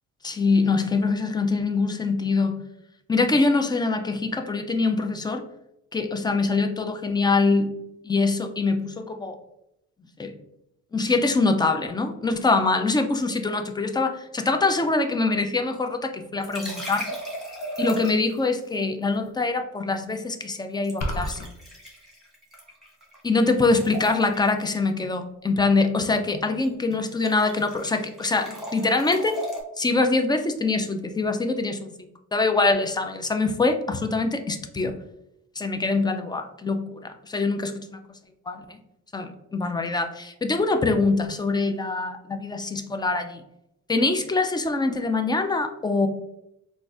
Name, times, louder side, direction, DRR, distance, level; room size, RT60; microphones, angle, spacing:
voice 1, 0.2-2.6 3.1-5.4 5.9-7.7 8.0-9.4 10.2-10.3 10.9-17.1 17.8-21.5 23.2-29.4 29.8-35.0 35.6-38.0 38.5-38.8 39.1-43.4 43.9-46.1, left 3 dB, 15° left, 7 dB, 0.3 m, -24 dB
sound 1, 16.4-18.4 20.8-23.2 23.4-24.6 26.4-26.7 26.9-29.6, right 1 dB, ahead, 1.3 m, -36 dB
sound 2, 21.0-21.5, left 1 dB, 65° left, 0.6 m, -28 dB
3.9 x 2.4 x 2.4 m, 0.83 s
cardioid pair, 90°, 30 cm